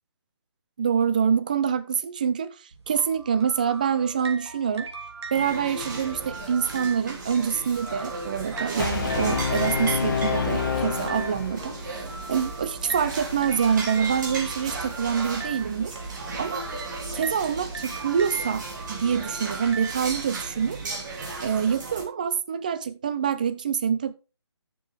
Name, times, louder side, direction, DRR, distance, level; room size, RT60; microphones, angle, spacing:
voice 1, 0.8-2.5 2.9-4.9 5.3-11.7 12.3-15.9 16.4-16.6 17.1-20.8 21.4-24.1, right 7 dB, 15° right, 0.4 m, -26 dB
sound 1, 2.7-20.0, right 4 dB, 70° right, 2.4 m, -39 dB
sound 2, 5.3-22.0, right 3 dB, 40° right, 3.0 m, -35 dB
Brass instrument, 8.8-11.9, left 6 dB, 45° left, 1.7 m, -27 dB
10.5 x 6.9 x 3.5 m
hypercardioid pair, 165°, 15 cm